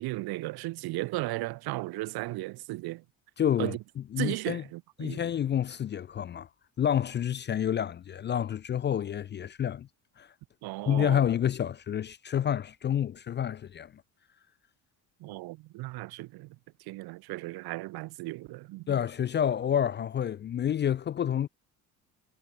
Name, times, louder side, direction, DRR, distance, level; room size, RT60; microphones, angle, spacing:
voice 1, 0.0-3.0 3.6-3.8 4.2-5.2 10.6-11.3 15.2-16.6 16.9-18.9, right 20 dB, 65° right, 0.8 m, -35 dB
voice 2, 3.4-3.8 4.1-4.6 5.0-6.5 6.8-9.9 10.2-10.3 10.9-13.9 18.9-21.5, left 9 dB, 30° left, 0.4 m, -28 dB
supercardioid pair, 90°, 40 cm